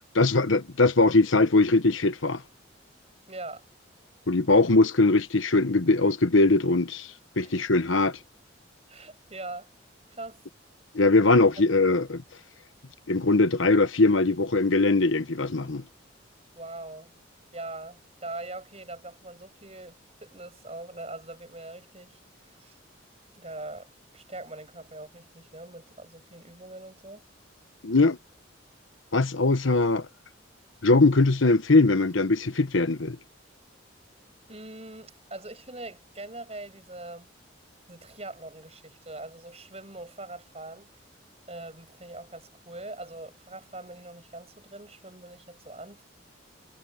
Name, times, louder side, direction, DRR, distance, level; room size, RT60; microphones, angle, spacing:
voice 1, 0.1-2.4 4.3-7.1 7.4-8.2 10.9-12.2 13.1-15.8 27.8-28.2 29.1-30.1 30.8-33.2, left 3 dB, 80° left, 1.1 m, -21 dB
voice 2, 3.3-3.6 7.4-7.7 8.9-9.7 10.1-10.4 11.6-11.7 16.5-17.1 17.5-22.8 23.3-23.9 24.1-27.2 34.5-37.3 37.9-40.9 41.5-46.0, right 2 dB, 30° right, 7.9 m, -42 dB
head